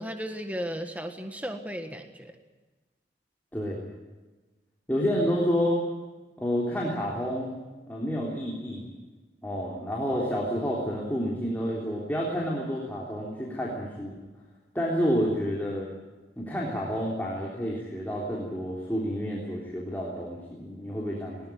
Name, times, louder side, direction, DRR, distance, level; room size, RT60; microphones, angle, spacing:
voice 1, 0.0-2.4, equal, 10° right, 6 dB, 1.5 m, -35 dB
voice 2, 3.5-3.8 4.9-5.8 6.4-7.5 7.9-8.9 9.4-14.2 14.7-15.9 16.4-21.4, equal, 10° left, -4 dB, 3.5 m, -29 dB
20.0 x 19.0 x 9.4 m, 1.2 s
head